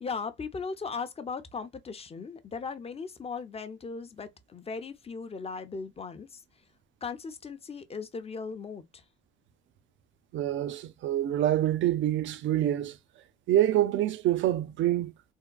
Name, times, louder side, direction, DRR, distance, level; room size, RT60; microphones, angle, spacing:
voice 1, 0.0-6.4 7.0-9.0, left 5 dB, 30° left, 0.6 m, -38 dB
voice 2, 10.3-13.0 13.5-15.1, right 12 dB, 75° right, 0.5 m, -26 dB
3.6 x 2.2 x 2.2 m
cardioid pair, 90°, 20 cm